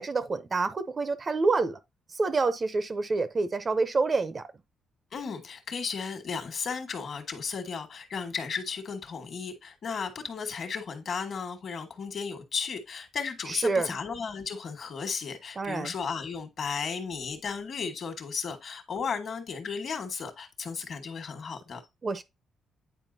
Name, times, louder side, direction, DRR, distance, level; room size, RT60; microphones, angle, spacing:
voice 1, 0.0-1.8 2.1-4.5 13.5-13.9 15.6-15.9 22.0-22.2, right 3 dB, 30° right, 0.6 m, -27 dB
voice 2, 5.1-21.8, left 5 dB, 50° left, 1.4 m, -34 dB
9.0 x 4.7 x 2.7 m
cardioid pair, 135°, 0 cm